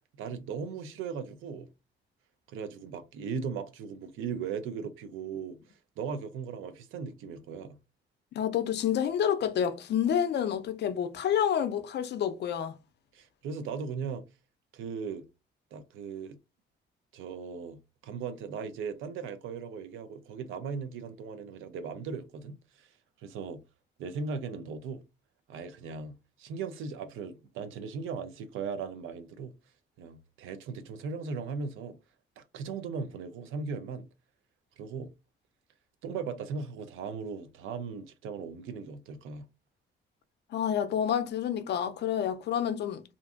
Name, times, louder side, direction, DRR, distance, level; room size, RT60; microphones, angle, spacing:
voice 1, 0.2-1.7 2.5-7.8 13.1-14.3 14.7-15.2 15.7-16.4 17.1-22.9 23.2-23.6 24.0-25.0 25.5-29.5 30.0-32.0 32.4-34.1 34.8-35.1 36.0-39.5, right 5 dB, 85° right, 0.5 m, -38 dB
voice 2, 8.3-12.8 40.5-43.0, left 9 dB, 60° left, 0.5 m, -28 dB
2.5 x 2.4 x 2.4 m
cardioid pair, 90°, 20 cm